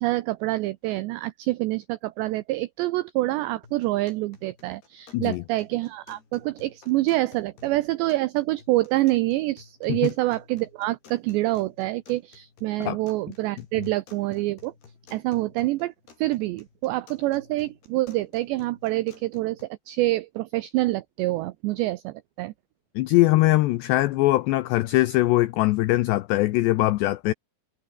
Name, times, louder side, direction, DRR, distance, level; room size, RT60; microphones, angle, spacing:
voice 1, 0.0-14.7 15.1-15.9 16.2-22.5, right 18 dB, 90° right, 2.5 m, -26 dB
sound 1, 3.6-19.6, left 5 dB, 50° left, 7.0 m, -54 dB
voice 2, 5.1-5.4 9.9-10.0 12.8-13.0 23.0-27.3, left 18 dB, 90° left, 2.4 m, -21 dB
omnidirectional pair, 5.9 m